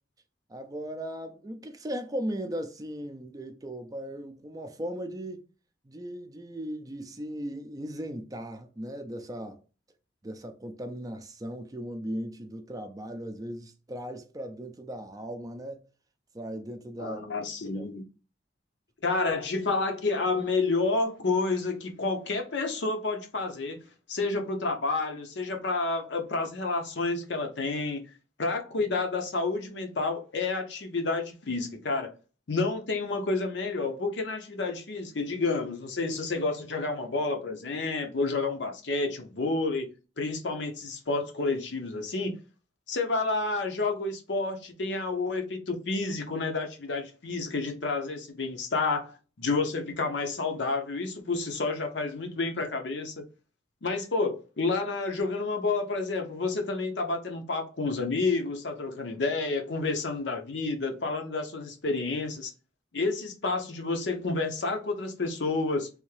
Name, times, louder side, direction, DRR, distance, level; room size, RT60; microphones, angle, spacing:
voice 1, 0.5-5.4 5.8-9.6 10.2-15.8 16.3-17.2 17.7-17.9, right 1 dB, 20° right, 0.4 m, -37 dB
voice 2, 17.0-18.0 19.0-23.8 24.1-28.0 28.4-32.1 32.5-39.9 40.2-42.3 42.9-53.2 53.8-62.5 62.9-65.9, left 3 dB, 70° left, 0.7 m, -30 dB
3.4 x 2.7 x 3.2 m
head